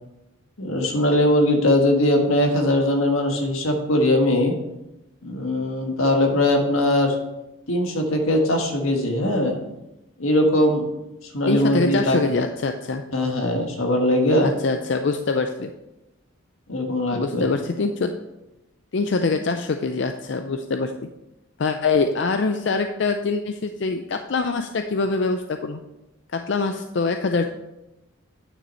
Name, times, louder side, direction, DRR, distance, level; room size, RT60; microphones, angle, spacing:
voice 1, 0.6-4.5 5.2-7.2 7.7-9.6 10.2-10.8 11.2-12.2 13.1-14.5 16.7-17.4, left 1 dB, 85° left, 2 dB, 1.6 m, -20 dB
voice 2, 11.5-13.0 14.4-15.7 17.1-18.1 18.9-20.9 21.6-25.8 26.3-27.5, left 4 dB, 60° left, 7 dB, 0.4 m, -24 dB
9.5 x 6.1 x 4.3 m, 0.94 s
head